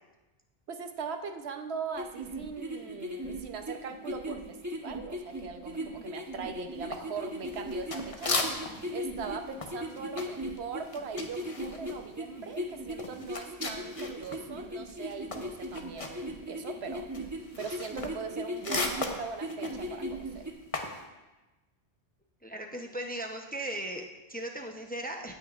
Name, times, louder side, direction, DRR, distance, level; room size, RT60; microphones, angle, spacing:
voice 1, 0.7-8.3 8.9-17.1 17.6-20.5, right 5 dB, 85° right, 6 dB, 1.1 m, -40 dB
sound 1, 1.9-20.5, equal, 20° right, 1.0 m, -38 dB
sound 2, 6.9-8.9 9.2-14.5 14.8-21.0, left 3 dB, 35° left, 0.9 m, -37 dB
voice 2, 22.4-25.3, right 1 dB, 10° left, 2 dB, 0.6 m, -37 dB
16.5 x 9.1 x 2.5 m, 1.1 s
omnidirectional pair, 1.0 m